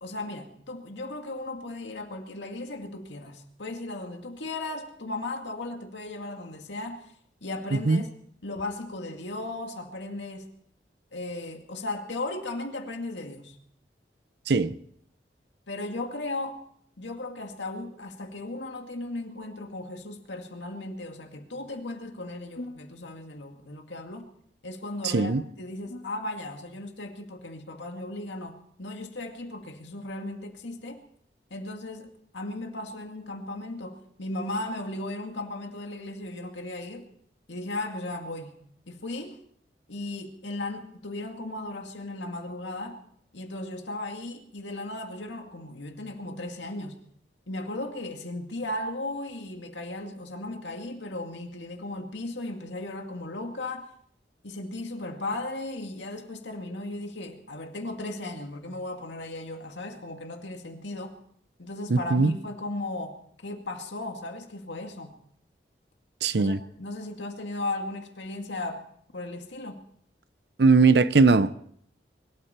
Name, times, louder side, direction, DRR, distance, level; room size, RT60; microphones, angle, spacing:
voice 1, 0.0-7.1 7.4-8.1 8.4-10.5 11.1-13.6 15.7-16.6 17.0-24.3 24.6-31.0 31.5-37.1 37.5-38.6 38.9-39.4 39.9-43.0 43.3-47.0 47.5-53.9 54.4-61.2 61.6-65.1 66.3-68.8 69.1-69.8, left 2 dB, 90° left, 2.2 m, -36 dB
voice 2, 7.7-8.0 14.5-14.8 25.0-25.4 61.9-62.4 66.2-66.6 70.6-71.6, right 4 dB, 70° right, 0.7 m, -20 dB
24.0 x 12.5 x 4.4 m
head